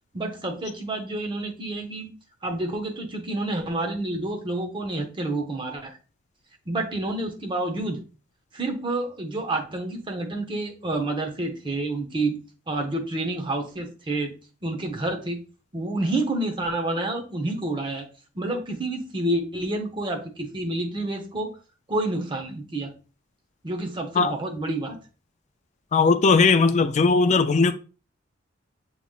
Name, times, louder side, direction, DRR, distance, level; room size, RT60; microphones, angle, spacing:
voice 1, 0.1-2.1 2.4-6.0 6.7-8.0 8.5-12.4 12.7-14.3 14.6-15.4 15.7-18.1 18.3-21.5 21.9-22.9 23.6-25.0, right 2 dB, 25° right, 0.8 m, -29 dB
voice 2, 25.9-27.7, left 4 dB, 35° left, 0.3 m, -18 dB
6.9 x 3.1 x 2.4 m
head